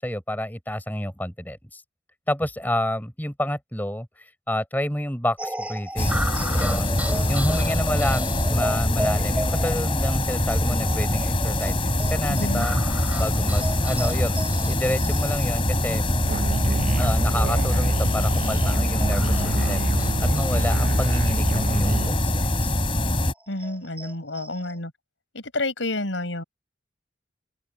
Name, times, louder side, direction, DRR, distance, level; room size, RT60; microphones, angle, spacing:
voice 1, 0.0-1.8 2.3-4.1 4.5-7.0 7.3-12.8 13.2-14.4 14.7-16.1 17.0-22.8, left 1 dB, 10° left, 6.8 m, -29 dB
sound 1, 5.4-22.3 22.6-22.7 23.1-24.7, right 1 dB, 10° right, 4.4 m, -35 dB
sound 2, 6.0-23.3, left 1 dB, 30° left, 4.9 m, -24 dB
voice 2, 12.3-12.7 23.5-24.9 25.3-26.4, left 2 dB, 85° left, 5.6 m, -29 dB
Musical instrument, 16.2-22.1, right 2 dB, 45° right, 0.7 m, -27 dB
open air
head